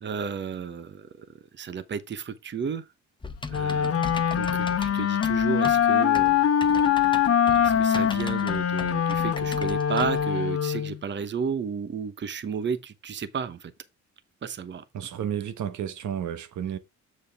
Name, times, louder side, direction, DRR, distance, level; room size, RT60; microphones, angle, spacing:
voice 1, 0.0-1.1 1.6-2.8 3.5-6.4 7.6-13.7 14.4-14.8, right 6 dB, 40° right, 0.9 m, -32 dB
Typing, 3.2-10.3, left 3 dB, 15° left, 0.9 m, -38 dB
Wind instrument woodwind instrument, 3.5-11.0, left 8 dB, 50° left, 1.0 m, -23 dB
voice 2, 14.9-16.8, right 9 dB, 70° right, 1.1 m, -32 dB
7.3 x 6.4 x 3.4 m
cardioid pair, 90°, 30 cm